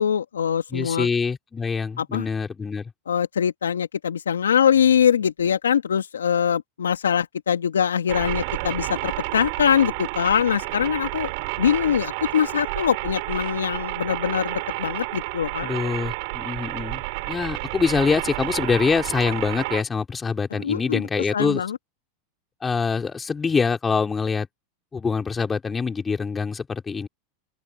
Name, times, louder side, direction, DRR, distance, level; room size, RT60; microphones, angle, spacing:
voice 1, 0.0-1.1 2.0-2.3 3.1-11.3 11.6-15.7 20.6-21.0 21.3-21.8, left 8 dB, 85° left, 1.7 m, -23 dB
voice 2, 0.7-2.9 15.6-21.6 22.6-24.5 24.9-27.1, left 5 dB, 20° left, 3.9 m, -25 dB
sound 1, 8.1-19.8, right 27 dB, 60° right, 6.1 m, -30 dB
open air
hypercardioid pair, 90°, 0 cm